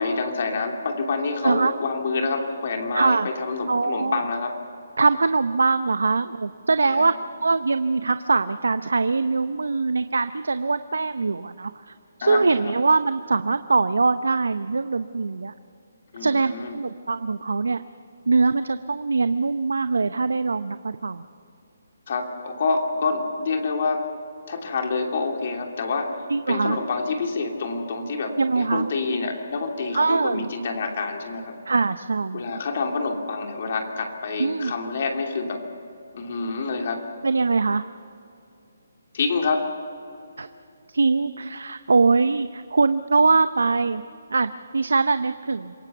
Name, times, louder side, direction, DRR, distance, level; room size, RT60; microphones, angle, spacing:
voice 1, 0.0-4.6 6.8-7.1 12.2-12.7 16.1-16.7 22.1-24.1 24.5-31.5 32.3-35.6 36.1-37.0 39.1-39.7, left 4 dB, 50° left, 3 dB, 3.0 m, -27 dB
voice 2, 2.9-3.3 3.7-4.2 5.0-7.1 7.4-11.9 12.2-15.5 16.2-17.8 18.3-21.2 26.3-26.8 28.4-28.9 30.0-30.5 31.7-32.6 34.4-34.7 37.2-37.8 40.4-40.5 40.9-44.0 44.3-45.7, right 4 dB, 85° right, 12 dB, 0.7 m, -22 dB
27.0 x 17.5 x 7.0 m, 2.6 s
hypercardioid pair, 160°, 0 cm